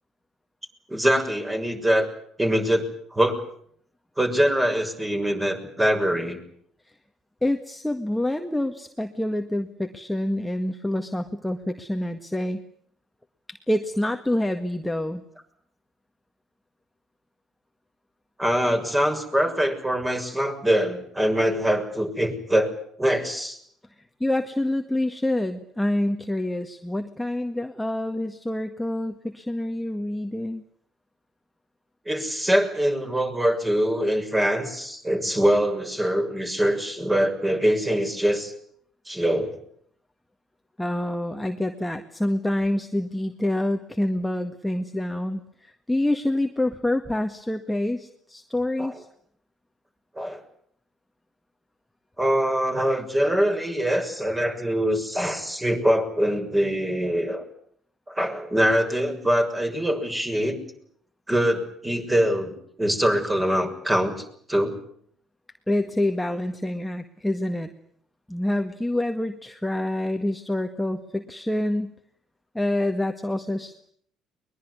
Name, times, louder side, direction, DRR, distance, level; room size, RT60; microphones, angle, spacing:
voice 1, 0.9-2.1 2.4-3.4 4.2-6.4 18.4-22.7 23.0-23.6 32.0-38.5 39.1-39.6 48.8-48.9 50.1-50.4 52.2-57.4 58.1-60.6 61.3-62.5 62.8-64.1 64.5-64.8, equal, 15° right, 5 dB, 6.6 m, -23 dB
voice 2, 7.4-12.6 13.5-15.2 24.2-30.6 40.8-49.1 65.7-67.7 68.3-71.9 72.5-73.9, left 1 dB, 5° left, 6 dB, 1.8 m, -27 dB
22.5 x 21.5 x 9.8 m, 0.65 s
hypercardioid pair, 55°, 0 cm